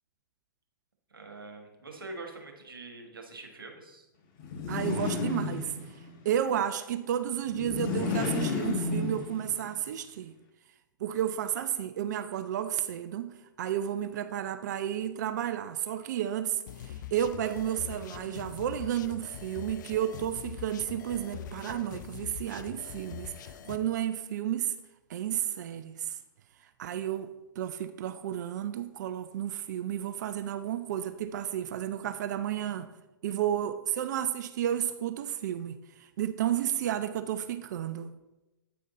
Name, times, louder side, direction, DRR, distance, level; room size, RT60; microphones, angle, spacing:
voice 1, 1.1-4.1, right 2 dB, 85° right, 1.5 m, -44 dB
sound 1, 4.4-6.1 7.5-9.7, left 4 dB, 40° left, 1.3 m, -32 dB
voice 2, 4.7-5.7 6.2-10.3 11.0-13.3 13.6-24.7 25.1-26.2 26.8-27.3 27.6-32.9 33.2-38.1, right 10 dB, 55° right, 0.4 m, -32 dB
sound 2, 16.7-23.8, left 9 dB, 60° left, 0.5 m, -43 dB
8.8 x 5.1 x 4.0 m
figure-of-eight pair, 110°, 11 cm